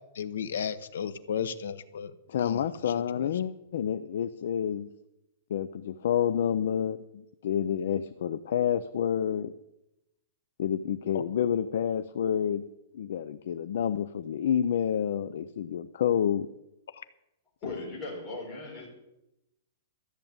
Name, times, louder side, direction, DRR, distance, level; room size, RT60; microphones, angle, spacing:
voice 1, 0.1-2.1 2.4-2.6 2.9-3.3 11.1-11.2 16.9-17.0, left 8 dB, 90° left, 13 dB, 1.0 m, -34 dB
voice 2, 2.3-4.9 5.5-9.5 10.6-12.6 12.9-16.5, left 9 dB, 55° left, 11 dB, 0.5 m, -29 dB
voice 3, 17.6-18.9, left 3 dB, 20° left, -4 dB, 4.8 m, -38 dB
13.5 x 6.8 x 8.9 m, 0.88 s
hypercardioid pair, 180°, 0 cm